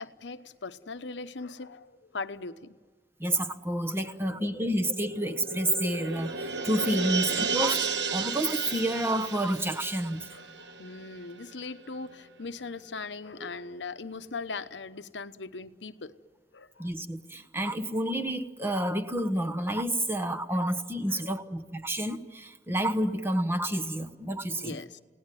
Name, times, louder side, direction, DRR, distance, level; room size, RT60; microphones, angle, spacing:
voice 1, 0.0-2.8 4.1-4.8 10.3-16.1 16.5-16.9 20.5-20.6 21.1-21.4 23.7-23.8 24.6-25.0, left 4 dB, 80° left, 1.0 m, -40 dB
voice 2, 3.2-10.2 13.4-13.5 16.8-24.8, right 1 dB, 15° right, 1.1 m, -29 dB
sound 1, 4.5-11.5 11.9-12.0, right 5 dB, 75° right, 1.4 m, -33 dB
30.0 x 18.0 x 9.3 m
head